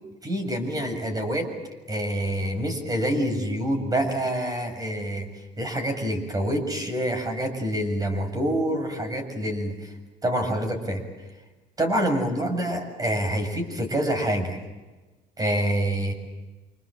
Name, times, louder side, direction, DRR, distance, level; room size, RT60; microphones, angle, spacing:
voice 1, 0.2-1.5 1.9-5.3 5.6-9.8 10.2-11.0 11.8-14.6 15.4-16.1, right 1 dB, 20° right, 6 dB, 7.4 m, -26 dB
29.0 x 26.5 x 7.8 m, 1.2 s
cardioid pair, 110°, 17 cm